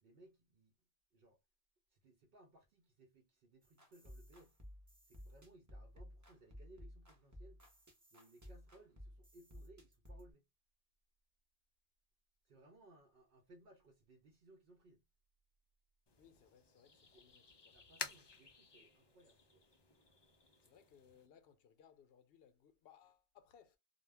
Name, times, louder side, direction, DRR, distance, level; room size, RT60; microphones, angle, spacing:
voice 1, 0.0-0.7 1.1-1.4 1.9-4.6 5.1-7.6 8.1-10.4 12.5-15.0 17.1-17.3 17.7-19.6, right 1 dB, 60° right, 0.7 m, -64 dB
sound 1, 3.6-10.3, equal, 20° right, 0.7 m, -56 dB
voice 2, 16.1-17.8 20.6-23.8, left 8 dB, 65° left, 0.8 m, -66 dB
sound 2, 16.1-21.3, left 5 dB, 45° left, 0.3 m, -52 dB
2.3 x 2.2 x 3.2 m
omnidirectional pair, 1.1 m